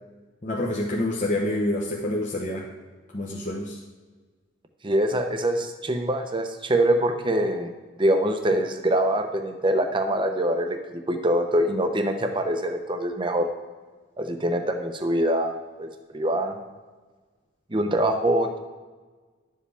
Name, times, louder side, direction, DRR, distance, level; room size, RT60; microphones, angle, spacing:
voice 1, 0.4-2.7 3.1-3.8, left 1 dB, 35° left, -3 dB, 0.9 m, -27 dB
voice 2, 4.8-7.7 8.0-13.5 14.2-16.6 17.7-18.6, right 1 dB, 25° right, 5 dB, 0.8 m, -24 dB
11.5 x 7.5 x 3.4 m, 1.4 s
head